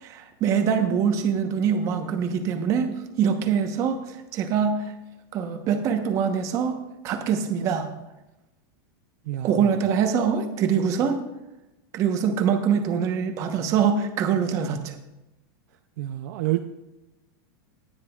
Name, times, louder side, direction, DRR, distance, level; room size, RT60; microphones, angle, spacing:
voice 1, 0.0-2.9 3.2-4.9 5.3-6.8 7.0-7.9 9.4-11.2 11.9-14.9, right 7 dB, 25° right, 6 dB, 1.0 m, -24 dB
voice 2, 9.3-9.7 16.0-16.6, right 15 dB, 55° right, 7 dB, 0.5 m, -28 dB
17.5 x 9.8 x 2.4 m, 0.96 s
supercardioid pair, 170°, 12 cm